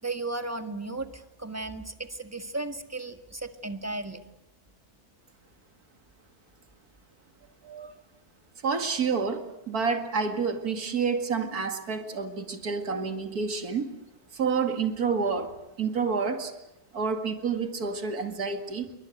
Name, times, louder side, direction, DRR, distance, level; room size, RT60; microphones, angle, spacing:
voice 1, 0.0-4.2, right 2 dB, 10° right, 8 dB, 1.6 m, -35 dB
voice 2, 8.6-13.9 14.3-15.5 15.8-16.5 16.9-18.9, right 5 dB, 85° right, 6 dB, 2.6 m, -29 dB
28.0 x 23.5 x 8.0 m, 0.92 s
omnidirectional pair, 1.6 m